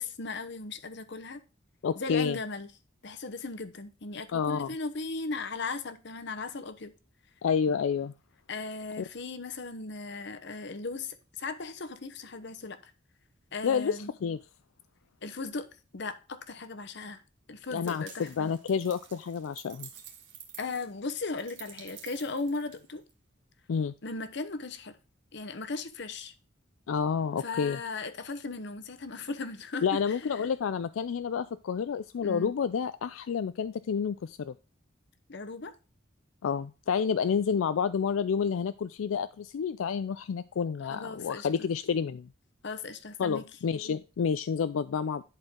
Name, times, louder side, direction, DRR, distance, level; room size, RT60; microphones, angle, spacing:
voice 1, 0.0-1.4 1.9-2.7 3.0-6.9 8.5-12.9 13.5-14.1 15.2-17.2 17.5-18.5 20.6-23.0 24.0-25.0 25.3-26.3 27.4-30.5 32.2-32.5 35.3-35.7 40.9-41.5 42.6-43.4, left 3 dB, 60° left, 0.9 m, -37 dB
voice 2, 1.8-2.4 4.3-4.7 7.4-8.1 9.0-9.1 13.6-14.4 17.7-19.9 23.7-23.9 26.9-27.8 29.8-34.5 36.4-42.3 43.2-45.2, left 6 dB, 90° left, 0.4 m, -29 dB
sound 1, 17.9-23.1, right 9 dB, 65° right, 1.6 m, -50 dB
11.0 x 4.4 x 3.6 m
head